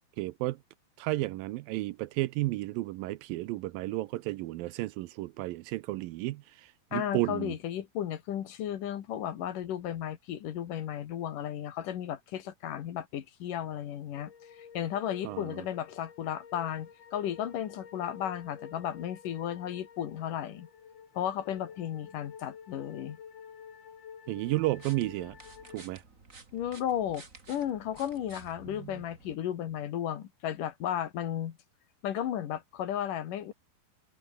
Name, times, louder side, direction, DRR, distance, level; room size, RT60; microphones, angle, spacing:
voice 1, 0.2-0.6 1.0-6.4 6.9-7.5 15.2-15.7 24.3-25.4 25.7-26.0 28.7-29.0, right 18 dB, 85° right, 2.3 m, -32 dB
voice 2, 6.9-14.3 14.7-20.7 21.2-23.2 26.5-31.6 32.0-33.5, left 10 dB, 65° left, 3.0 m, -34 dB
sound 1, 14.1-25.9, left 7 dB, 85° left, 5.5 m, -50 dB
sound 2, 24.4-29.3, right 4 dB, 25° right, 2.6 m, -53 dB
omnidirectional pair, 4.3 m